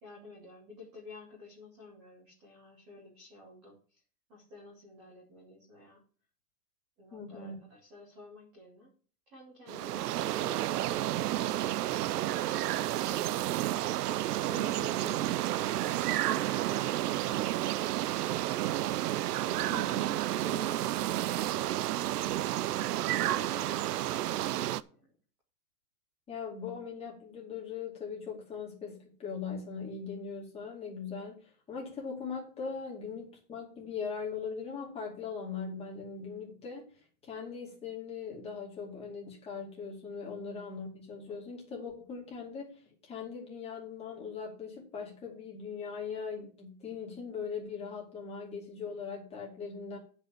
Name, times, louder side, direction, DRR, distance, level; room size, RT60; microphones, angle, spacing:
voice 1, 0.0-4.0 4.3-6.0 7.0-8.9 9.3-11.5 12.5-13.8 14.4-18.7 19.4-21.6 23.0-23.8 24.2-25.1, left 3 dB, 5° right, -5 dB, 0.4 m, -52 dB
voice 2, 7.1-7.6 19.5-20.0 26.3-36.9 37.2-50.0, left 5 dB, 15° left, -2 dB, 2.4 m, -40 dB
sound 1, 9.7-24.8, right 14 dB, 80° right, 0.7 m, -31 dB
9.1 x 5.5 x 7.3 m, 0.42 s
supercardioid pair, 170°, 47 cm